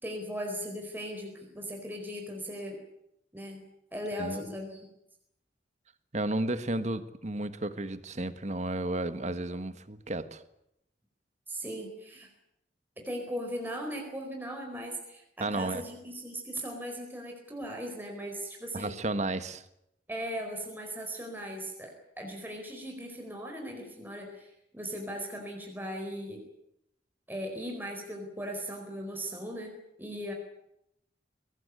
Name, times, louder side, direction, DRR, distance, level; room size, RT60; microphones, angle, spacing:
voice 1, 0.0-2.8 3.3-3.6 3.9-4.9 11.5-12.3 13.0-19.0 20.1-21.9 22.2-26.4 27.3-29.7 30.0-30.3, equal, 10° right, 1 dB, 4.5 m, -38 dB
voice 2, 6.1-10.4 15.4-15.8 18.7-19.6, right 2 dB, 40° right, 11 dB, 1.6 m, -33 dB
22.5 x 19.0 x 9.7 m, 0.79 s
head